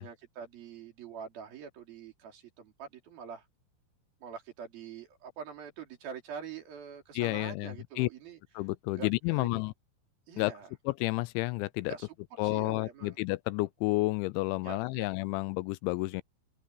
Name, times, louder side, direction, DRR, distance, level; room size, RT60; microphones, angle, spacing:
voice 1, 0.0-3.5 4.2-8.4 8.9-9.1 9.3-9.6 10.3-10.7 11.9-12.1 12.4-13.2 14.6-15.1, right 7 dB, 50° right, 4.9 m, -45 dB
voice 2, 7.2-8.1 8.6-9.7 10.4-10.5 10.9-11.9 12.4-16.2, left 22 dB, 85° left, 2.7 m, -31 dB
open air
omnidirectional pair, 5.7 m